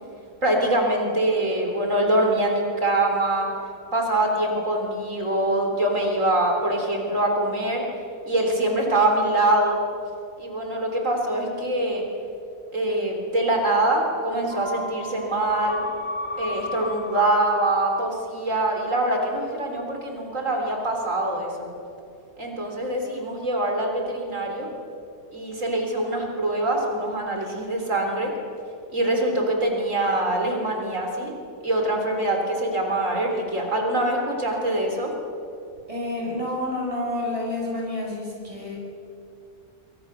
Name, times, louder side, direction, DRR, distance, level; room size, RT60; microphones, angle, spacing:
voice 1, 0.4-3.5 3.9-7.8 8.3-9.8 10.4-12.0 12.7-15.8 16.4-21.7 22.4-24.7 25.3-28.3 28.9-31.3 31.6-35.1, right 1 dB, 60° right, 2 dB, 4.1 m, -24 dB
sound 1, 14.5-18.2 18.5-18.6, left 2 dB, 35° left, 2.0 m, -34 dB
voice 2, 35.9-38.8, left 1 dB, 20° right, -5 dB, 8.0 m, -29 dB
26.5 x 25.0 x 6.8 m, 2.6 s
omnidirectional pair, 1.5 m